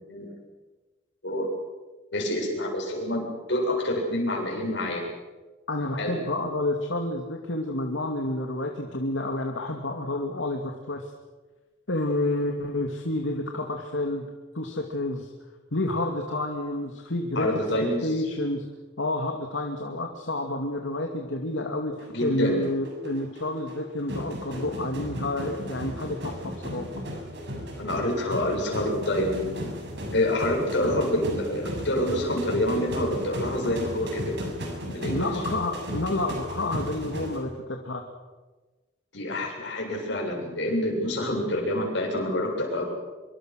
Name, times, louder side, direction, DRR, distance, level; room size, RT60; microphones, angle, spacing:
voice 1, 2.1-5.0 6.0-6.2 17.3-18.1 22.1-22.6 27.8-29.6 30.1-34.5 34.9-35.4 39.1-43.0, left 1 dB, 65° left, 0 dB, 7.8 m, -27 dB
voice 2, 5.7-11.1 11.9-14.3 14.5-15.3 15.7-17.5 18.0-18.7 19.0-27.0 34.9-38.0, left 1 dB, 85° left, 2 dB, 2.5 m, -29 dB
sound 1, 22.0-37.4, equal, 65° right, 6.8 m, -35 dB
25.5 x 24.0 x 6.5 m, 1.3 s
head